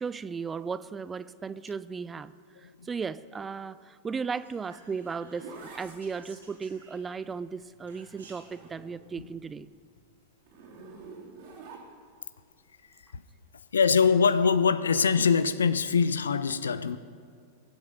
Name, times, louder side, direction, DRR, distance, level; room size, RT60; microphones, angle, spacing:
voice 1, 0.0-2.3 2.6-9.7, right 5 dB, 15° right, 16 dB, 0.4 m, -36 dB
Whispering, 4.3-7.3 7.9-8.6, right 3 dB, 75° right, 3.5 m, -56 dB
Zipper (clothing), 4.7-9.2 9.6-12.2 13.8-14.2, right 4 dB, 50° right, 3.4 m, -49 dB
voice 2, 13.7-17.0, left 6 dB, 70° left, 15 dB, 0.5 m, -23 dB
22.0 x 8.1 x 5.3 m, 2.3 s
figure-of-eight pair, 90°, 0 cm